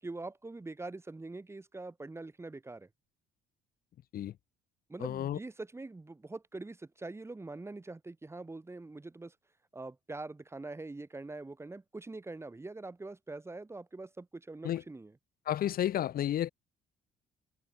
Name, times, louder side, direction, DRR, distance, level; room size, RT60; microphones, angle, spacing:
voice 1, 0.0-2.9 4.9-9.3 9.7-15.1, right 2 dB, 15° right, 8.0 m, -44 dB
voice 2, 5.0-5.4 14.6-14.8 15.5-16.5, left 11 dB, 60° left, 3.4 m, -31 dB
cardioid pair, 110°, 17 cm